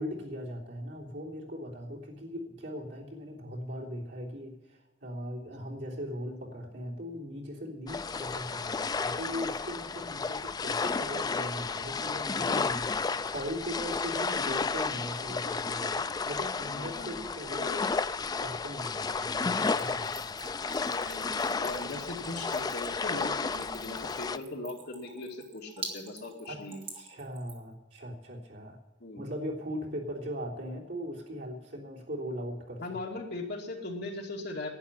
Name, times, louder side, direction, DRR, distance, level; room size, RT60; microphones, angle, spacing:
voice 1, 0.0-17.8 18.2-20.2 26.5-26.6 26.9-28.8 29.1-32.8, equal, 75° right, -3 dB, 3.3 m, -39 dB
sound 1, 7.9-24.4, left 4 dB, 20° left, 0.3 m, -32 dB
voice 2, 16.6-17.2 17.6-17.9 20.9-26.8 29.0-29.2 32.8-34.7, left 2 dB, 60° left, 0 dB, 2.5 m, -39 dB
Splash splatter / Trickle dribble, 19.4-27.7, right 3 dB, 30° right, 2.8 m, -46 dB
11.5 x 9.2 x 9.9 m, 1.1 s
head